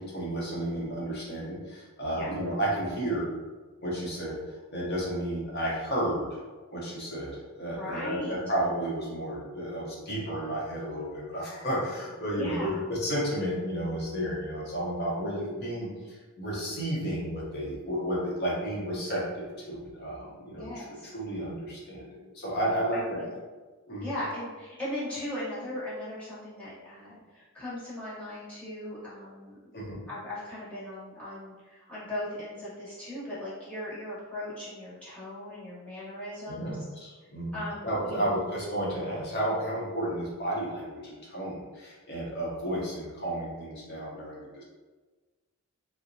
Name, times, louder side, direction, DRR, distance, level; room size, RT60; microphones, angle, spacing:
voice 1, 0.0-3.3 3.8-6.3 6.7-23.3 23.9-24.1 29.7-30.0 36.5-44.6, right 1 dB, 45° left, -5 dB, 0.7 m, -32 dB
voice 2, 7.7-8.3 12.4-12.8 20.6-21.1 22.9-23.2 24.0-29.6 30.1-36.8 37.5-38.4, left 1 dB, 5° left, -11 dB, 0.9 m, -38 dB
2.8 x 2.1 x 2.5 m, 1.3 s
head